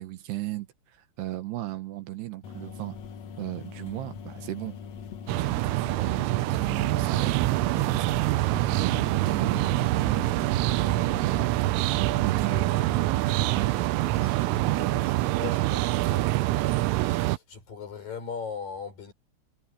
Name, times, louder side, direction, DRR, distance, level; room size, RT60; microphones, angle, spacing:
voice 1, 0.0-3.0 3.4-4.8 5.4-8.3 8.7-11.6 11.9-13.0 13.5-13.8, right 15 dB, 70° right, 2.8 m, -36 dB
sound 1, 2.4-11.4, left 7 dB, 80° left, 1.5 m, -42 dB
sound 2, 5.3-17.4, right 19 dB, 90° right, 3.3 m, -25 dB
sound 3, 6.4-15.0, right 4 dB, 50° right, 8.5 m, -39 dB
voice 2, 12.1-12.8 14.1-19.1, left 6 dB, 45° left, 6.8 m, -40 dB
omnidirectional pair, 5.6 m